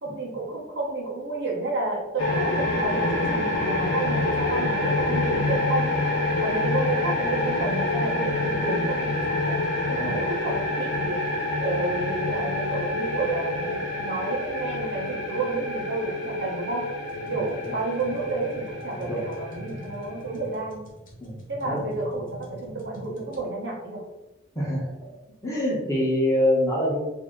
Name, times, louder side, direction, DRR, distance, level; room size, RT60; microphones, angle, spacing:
voice 1, 0.0-6.0 6.4-11.2 11.6-16.9 17.3-20.8 21.5-24.0, right 3 dB, 60° right, -2 dB, 0.8 m, -30 dB
sound 1, 2.2-20.5, left 2 dB, 80° left, 0.9 m, -27 dB
sound 2, 17.1-23.4, equal, 45° left, 1.0 m, -43 dB
voice 2, 17.2-17.8 19.0-19.2 21.2-21.3 21.6-21.8 24.5-24.9 25.4-27.0, left 1 dB, 15° left, -5 dB, 0.9 m, -25 dB
2.7 x 2.7 x 3.6 m, 0.99 s
head